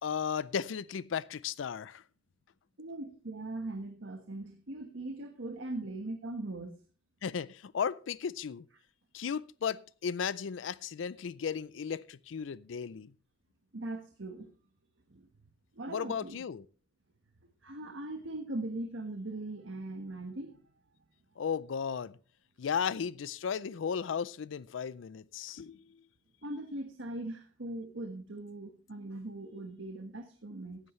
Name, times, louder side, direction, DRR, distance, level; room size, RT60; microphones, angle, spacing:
voice 1, 0.0-2.0 7.2-8.7 9.1-13.1 15.9-16.6 21.4-22.2 22.6-25.9, left 7 dB, 80° left, 0.4 m, -35 dB
voice 2, 2.8-6.8 13.7-14.5 15.1-15.3 15.7-16.4 17.6-20.7 26.4-30.8, right 2 dB, 80° right, 1.4 m, -40 dB
15.5 x 11.0 x 3.2 m
head